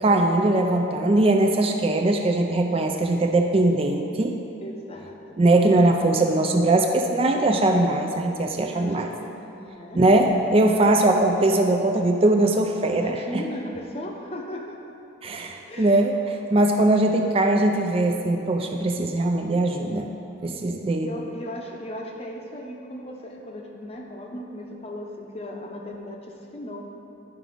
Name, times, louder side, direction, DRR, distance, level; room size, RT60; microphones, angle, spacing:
voice 1, 0.0-4.4 5.4-9.1 9.9-13.4 15.2-16.1 16.5-20.1 20.4-21.1, right 2 dB, 30° right, 4 dB, 0.4 m, -21 dB
voice 2, 4.6-5.4 8.7-10.0 13.0-15.0 15.6-16.1 21.0-26.8, left 1 dB, 30° left, 1 dB, 0.7 m, -37 dB
11.0 x 5.0 x 5.0 m, 2.9 s
head